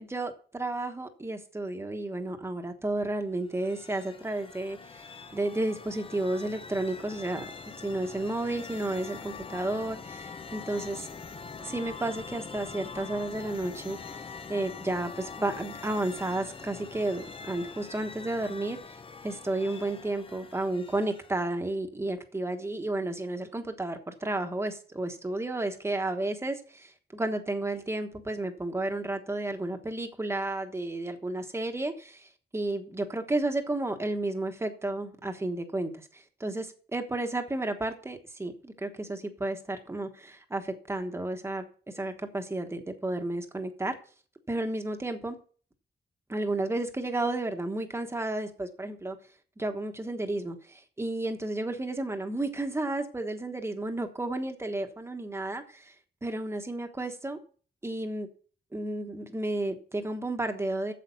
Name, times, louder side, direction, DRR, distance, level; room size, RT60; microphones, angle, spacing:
voice 1, 0.0-5.0 5.3-7.4 7.8-11.1 11.6-44.0 44.5-45.4 46.3-49.2 49.6-55.9 56.2-57.4 57.8-58.3 58.7-60.9, right 2 dB, 15° right, 1.2 m, -32 dB
sound 1, 3.4-21.6, left 5 dB, 30° left, 0.6 m, -44 dB
8.4 x 7.5 x 5.7 m
wide cardioid pair, 175°, 19 cm